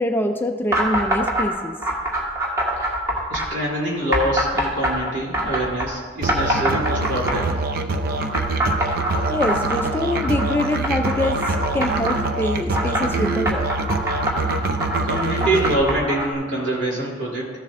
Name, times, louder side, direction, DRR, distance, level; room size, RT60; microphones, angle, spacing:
voice 1, 0.0-1.8 9.3-13.7, left 1 dB, 10° left, 4 dB, 0.4 m, -24 dB
sound 1, 0.7-1.5 1.8-3.5 4.1-5.9 6.3-7.6 8.3-12.2 12.7-16.3, right 1 dB, 15° right, 1.5 m, -24 dB
voice 2, 3.3-7.5 15.0-17.6, right 1 dB, 70° right, -5 dB, 2.9 m, -25 dB
Musical instrument, 6.2-15.8, right 2 dB, 50° right, 0.5 m, -25 dB
14.5 x 7.4 x 2.5 m, 1.5 s
head